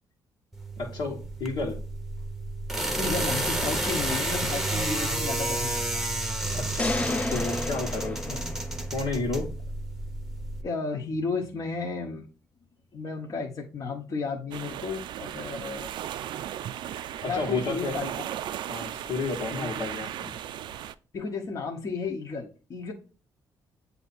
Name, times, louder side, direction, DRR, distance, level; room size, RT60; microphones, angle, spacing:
sound 1, 0.5-10.6, right 1 dB, 5° right, 0.8 m, -31 dB
voice 1, 0.8-1.8 6.5-8.4 8.9-9.5 17.2-18.0 18.7-20.3, left 3 dB, 80° left, -4 dB, 1.5 m, -32 dB
voice 2, 3.0-6.0 7.2-7.3 10.6-12.3 12.9-15.9 17.2-18.3 19.5-19.7 21.1-22.9, left 4 dB, 45° left, -1 dB, 1.0 m, -33 dB
sound 2, 6.8-9.1, left 2 dB, 15° left, 0.3 m, -31 dB
sound 3, 14.5-20.9, right 11 dB, 75° right, 0.3 m, -36 dB
8.0 x 2.8 x 4.3 m, 0.37 s
cardioid pair, 105°, 8 cm